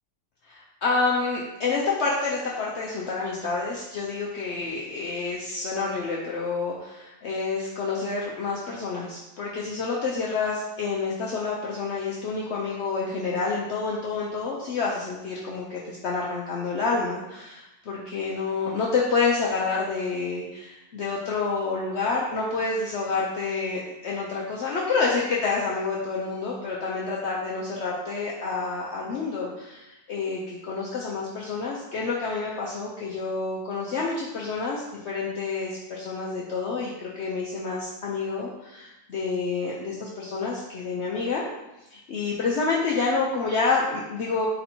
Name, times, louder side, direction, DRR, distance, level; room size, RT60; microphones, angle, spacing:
voice 1, 0.5-41.4 41.9-44.5, left 4 dB, 90° left, -4 dB, 0.6 m, -28 dB
4.3 x 2.7 x 4.2 m, 0.94 s
omnidirectional pair, 1.8 m